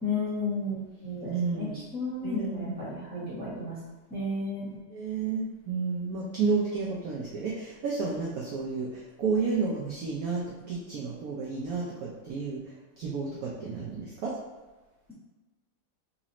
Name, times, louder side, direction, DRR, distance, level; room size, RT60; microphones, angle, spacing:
voice 1, 0.0-3.8 4.1-4.7, left 2 dB, 5° left, -10 dB, 0.8 m, -33 dB
voice 2, 1.3-1.8 2.2-2.8 4.9-14.4, right 4 dB, 70° right, -4 dB, 0.9 m, -31 dB
4.0 x 2.6 x 2.9 m, 1.2 s
omnidirectional pair, 2.1 m